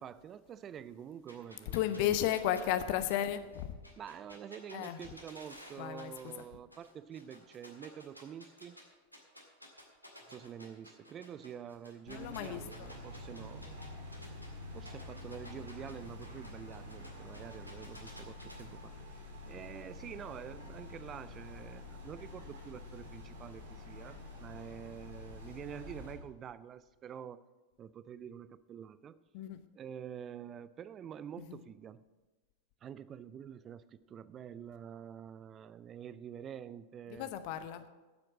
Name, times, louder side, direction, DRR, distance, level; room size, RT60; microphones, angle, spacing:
voice 1, 0.0-2.1 4.0-8.8 10.3-13.7 14.7-27.4 27.8-29.2 29.7-32.0 32.8-37.3, right 8 dB, 25° right, 17 dB, 0.4 m, -47 dB
sound 1, 1.3-6.4 6.7-8.8 9.1-14.5 14.8-18.6, equal, 90° right, 1.9 m, -54 dB
voice 2, 1.7-3.8 4.7-5.0 5.8-6.1 12.1-12.9 29.3-29.6 31.4-31.6 37.1-37.8, left 11 dB, 45° left, 11 dB, 0.8 m, -34 dB
sound 2, 12.1-26.1, left 2 dB, 60° right, 2.8 m, -48 dB
9.6 x 7.7 x 7.5 m, 1.2 s
figure-of-eight pair, 90°, 0 cm